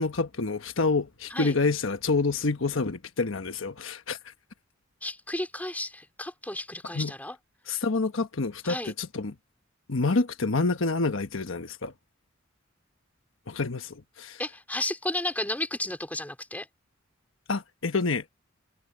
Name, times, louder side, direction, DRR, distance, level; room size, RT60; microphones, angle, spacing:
voice 1, 0.0-4.2 6.9-7.1 7.7-9.3 9.9-11.9 13.5-14.4 17.5-18.2, left 3 dB, 70° left, 1.2 m, -27 dB
voice 2, 5.0-7.4 8.6-8.9 14.4-16.7, left 1 dB, 10° left, 4.3 m, -33 dB
head